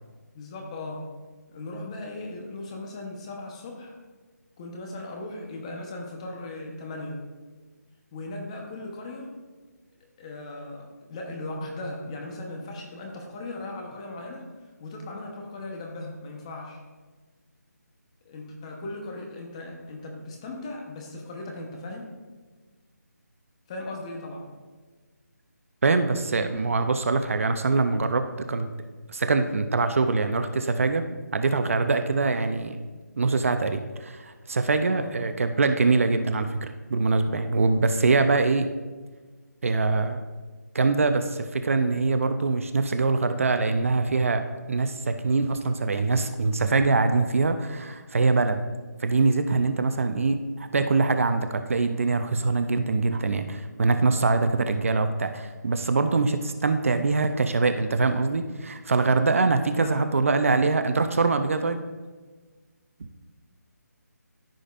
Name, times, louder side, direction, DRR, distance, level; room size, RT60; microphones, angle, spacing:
voice 1, 0.3-1.0 1.5-3.9 4.6-7.2 8.1-9.3 10.2-14.5 14.8-16.8 18.2-22.1 23.7-24.5 34.9-35.2 59.8-60.3, left 2 dB, 20° left, 1 dB, 1.0 m, -37 dB
voice 2, 25.8-28.7 29.1-31.0 31.3-32.8 33.2-38.7 39.6-40.2 40.7-44.4 44.7-48.6 49.0-61.8, right 3 dB, 50° right, 9 dB, 0.6 m, -23 dB
14.0 x 5.2 x 2.5 m, 1.4 s
figure-of-eight pair, 165°, 9 cm